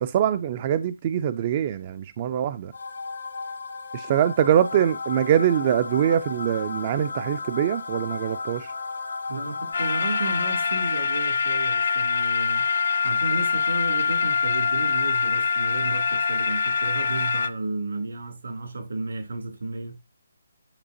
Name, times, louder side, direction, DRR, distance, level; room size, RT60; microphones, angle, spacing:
voice 1, 0.0-2.7 3.9-8.7, right 10 dB, 30° right, 0.3 m, -23 dB
sound 1, 2.7-11.0, left 4 dB, 80° left, 1.5 m, -35 dB
voice 2, 9.3-12.7 13.0-20.0, right 3 dB, 80° right, 2.9 m, -33 dB
sound 2, 9.7-17.5, left 5 dB, 55° left, 0.7 m, -24 dB
8.6 x 4.9 x 2.7 m
hypercardioid pair, 165°, 0 cm